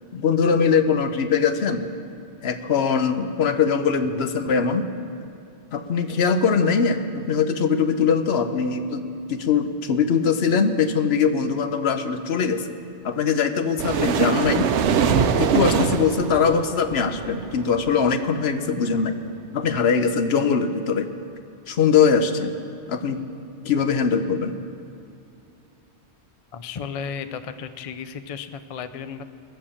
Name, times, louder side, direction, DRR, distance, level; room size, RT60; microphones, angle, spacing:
voice 1, 0.1-1.8 2.4-4.8 5.7-9.0 9.3-12.8 13.0-14.7 15.2-19.2 19.5-21.1 21.7-22.5 22.9-23.2 23.6-24.5, left 6 dB, 65° left, 8 dB, 1.0 m, -21 dB
sound 1, 13.8-18.1, right 6 dB, 85° right, 1.0 m, -23 dB
voice 2, 26.5-29.2, left 6 dB, 50° left, 10 dB, 0.4 m, -34 dB
19.5 x 7.4 x 7.1 m, 2.7 s
omnidirectional pair, 1.2 m